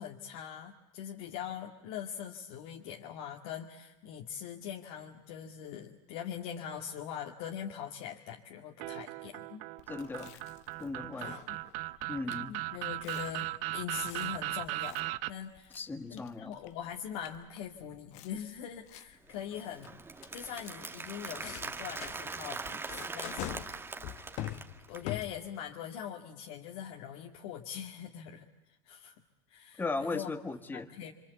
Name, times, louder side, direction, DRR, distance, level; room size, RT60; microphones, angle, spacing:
voice 1, 0.0-9.6 11.2-11.6 12.2-15.8 16.1-20.0 20.3-23.9 24.9-28.5 28.8-29.2 29.5-30.3 30.7-31.1, left 9 dB, 70° left, 1 dB, 2.2 m, -42 dB
sound 1, 8.8-15.3, right 19 dB, 65° right, 1.0 m, -38 dB
Chewing mastication, 9.8-25.7, left 14 dB, 55° left, 1.2 m, -47 dB
voice 2, 9.9-10.4 10.8-11.4 12.1-12.6 15.7-16.6 29.8-30.9, left 3 dB, 15° left, 8 dB, 1.7 m, -37 dB
Applause, 19.3-25.1, right 4 dB, 15° right, 2.0 m, -42 dB
27.5 x 25.0 x 8.3 m, 0.96 s
supercardioid pair, 120°, 13 cm